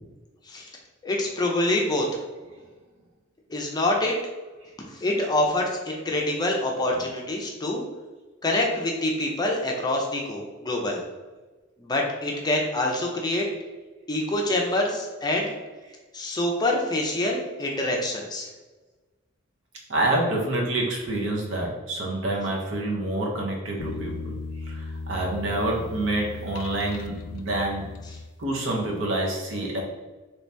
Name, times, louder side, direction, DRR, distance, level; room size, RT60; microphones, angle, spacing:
voice 1, 1.0-2.1 3.5-4.1 4.9-7.8 8.4-11.0 11.8-13.4 14.1-15.5 16.1-18.5 28.1-28.2, left 1 dB, 20° left, 0 dB, 0.5 m, -26 dB
voice 2, 19.9-24.3 25.1-27.8 28.4-29.8, right 2 dB, 65° right, -2 dB, 0.8 m, -27 dB
sound 1, 23.8-28.7, left 3 dB, 90° left, 0.3 m, -37 dB
3.0 x 2.8 x 3.3 m, 1.2 s
head